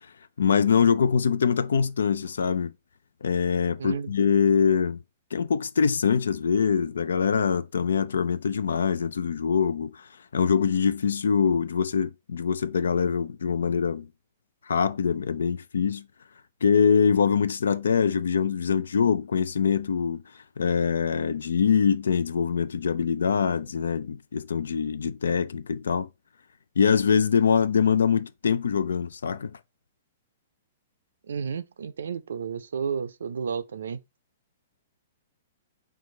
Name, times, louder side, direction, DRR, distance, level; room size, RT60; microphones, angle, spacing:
voice 1, 0.4-2.7 3.2-5.0 5.3-14.1 14.7-16.1 16.6-20.2 20.6-26.1 26.8-29.6, left 6 dB, 85° left, 0.4 m, -24 dB
voice 2, 3.8-4.1 31.3-34.0, right 6 dB, 80° right, 0.4 m, -32 dB
4.5 x 2.4 x 3.7 m
hypercardioid pair, 135°, 0 cm